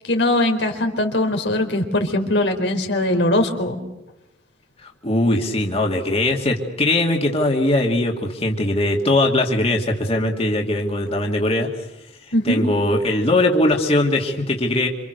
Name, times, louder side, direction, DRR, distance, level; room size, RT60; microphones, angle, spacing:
voice 1, 0.0-3.8 12.3-12.6, left 1 dB, 85° left, 4 dB, 4.3 m, -21 dB
voice 2, 4.8-11.9 12.4-14.9, left 1 dB, 35° left, 1 dB, 2.6 m, -20 dB
28.0 x 26.5 x 6.8 m, 0.92 s
head